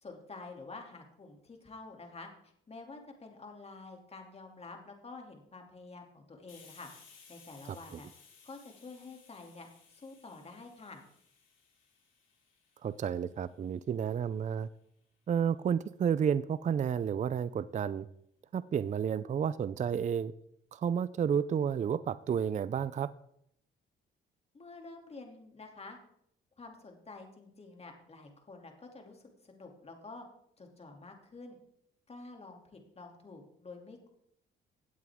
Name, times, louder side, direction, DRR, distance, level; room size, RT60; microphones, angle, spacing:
voice 1, 0.0-6.9 7.3-8.1 8.4-11.0 24.5-26.0 26.6-30.3 30.6-31.6 32.1-34.1, left 3 dB, 30° left, 3 dB, 2.7 m, -49 dB
Hiss, 6.5-13.9, left 6 dB, 75° left, 4.8 m, -60 dB
voice 2, 12.8-14.7 15.3-18.1 18.5-20.3 20.7-23.1, right 7 dB, 40° right, 16 dB, 0.5 m, -31 dB
17.0 x 8.3 x 3.6 m, 0.71 s
cardioid pair, 90°, 20 cm